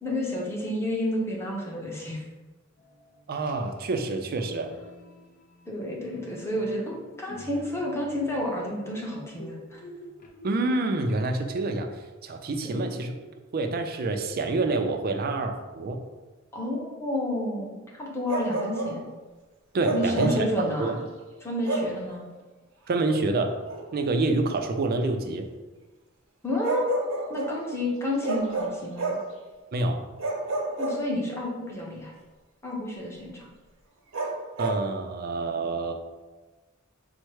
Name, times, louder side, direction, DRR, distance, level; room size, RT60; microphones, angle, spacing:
voice 1, 0.0-2.2 5.7-9.8 12.6-13.0 16.5-19.0 19.9-21.0 21.4-22.3 26.4-26.9 27.3-29.2 30.8-32.1 32.6-33.5, left 1 dB, 15° left, -3 dB, 0.8 m, -30 dB
sound 1, 2.8-11.2, equal, 45° left, 0.6 m, -48 dB
voice 2, 3.3-4.7 10.4-11.9 12.2-13.1 13.5-16.0 19.7-20.5 20.8-20.9 22.9-23.6 23.9-25.5 29.7-30.0 34.6-35.9, right 2 dB, 50° right, 6 dB, 0.4 m, -27 dB
Bark, 18.3-19.0 19.8-20.5 21.6-22.0 23.7-23.8 26.6-27.6 28.2-29.3 30.2-31.5 34.1-34.9, right 3 dB, 75° right, 0.8 m, -30 dB
4.4 x 2.1 x 4.6 m, 1.2 s
head